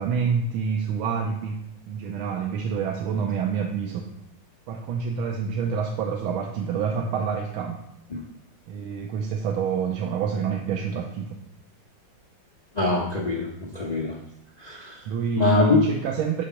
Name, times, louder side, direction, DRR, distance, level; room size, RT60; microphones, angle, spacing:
voice 1, 0.0-4.1 4.7-7.8 8.7-11.4 15.1-16.4, right 6 dB, 80° right, 1 dB, 1.5 m, -27 dB
voice 2, 12.7-14.2 14.6-15.0 15.4-15.8, left 2 dB, 60° left, -2 dB, 0.4 m, -23 dB
5.9 x 5.0 x 5.6 m, 0.82 s
omnidirectional pair, 2.3 m